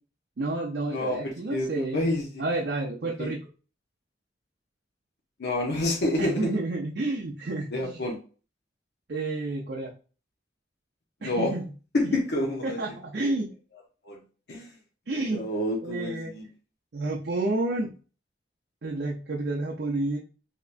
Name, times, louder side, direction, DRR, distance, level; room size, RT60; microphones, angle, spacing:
voice 1, 0.4-2.0 2.4-3.4 6.2-8.0 9.1-9.9 11.2-11.7 12.0-12.2 12.6-13.5 15.1-15.4 15.8-16.3 16.9-17.9 18.8-20.2, right 2 dB, 70° right, -2 dB, 0.6 m, -30 dB
voice 2, 0.9-2.4 3.2-3.3 5.4-6.6 7.7-8.2 11.2-11.5 11.9-12.8 14.0-14.2 14.5-14.7 15.3-16.4, left 1 dB, 70° left, -1 dB, 0.7 m, -28 dB
3.3 x 2.9 x 2.5 m, 0.36 s
head